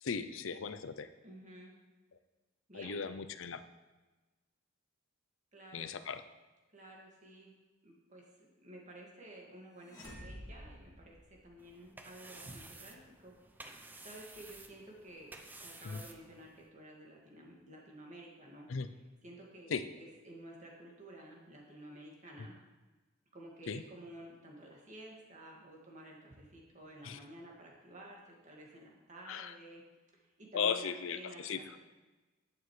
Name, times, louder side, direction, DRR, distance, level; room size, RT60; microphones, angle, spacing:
voice 1, 0.0-1.1 2.7-3.6 5.7-6.2 15.8-16.0 18.7-18.9 19.7-19.8 23.7-23.8 27.0-27.2 29.3-29.5 30.5-31.6, left 6 dB, 65° left, 11 dB, 0.5 m, -37 dB
voice 2, 1.2-1.7 2.7-3.0 5.5-6.0 6.7-7.5 7.8-11.2 11.4-13.3 13.7-15.3 15.6-22.6 23.3-29.8 30.1-31.8, right 1 dB, 35° right, -2 dB, 2.0 m, -52 dB
sound 1, 9.8-11.8, equal, 20° left, 2.3 m, -50 dB
sound 2, 11.6-16.7, right 2 dB, 10° right, 0.5 m, -53 dB
11.0 x 8.7 x 3.2 m, 1.2 s
head